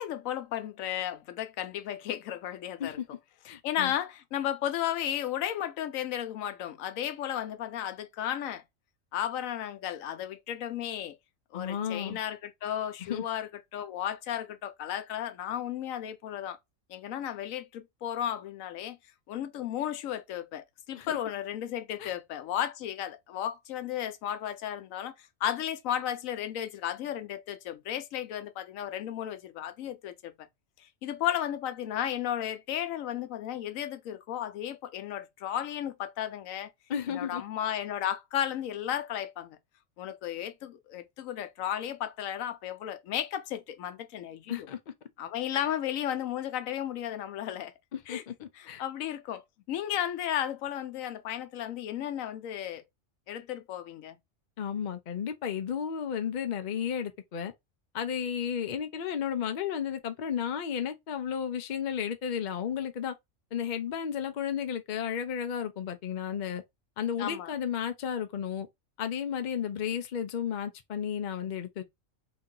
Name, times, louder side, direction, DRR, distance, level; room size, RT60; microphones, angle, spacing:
voice 1, 0.0-3.0 3.6-8.6 9.1-11.2 11.5-16.6 16.9-19.0 19.3-30.5 30.8-36.7 37.1-39.6 40.0-44.7 45.2-47.7 48.1-48.2 48.6-52.8 53.3-54.2 67.2-67.5, left 11 dB, 90° left, 1.0 m, -34 dB
voice 2, 3.5-3.9 11.5-12.2 13.1-13.2 21.0-21.2 22.0-22.1 36.9-37.4 44.5-44.8 47.9-48.8 54.6-57.5 57.9-63.1 63.5-66.6 67.0-68.7 69.0-71.8, left 8 dB, 50° left, 0.6 m, -33 dB
2.9 x 2.8 x 3.7 m
omnidirectional pair, 1.3 m